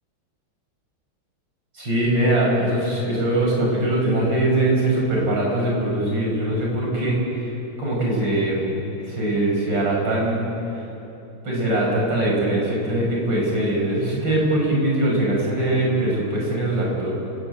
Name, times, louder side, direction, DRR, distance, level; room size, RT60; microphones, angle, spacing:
voice 1, 1.8-7.2 7.8-8.6 9.1-10.4 11.4-17.1, right 1 dB, 60° right, -2 dB, 6.7 m, -22 dB
30.0 x 15.5 x 9.0 m, 2.9 s
omnidirectional pair, 2.2 m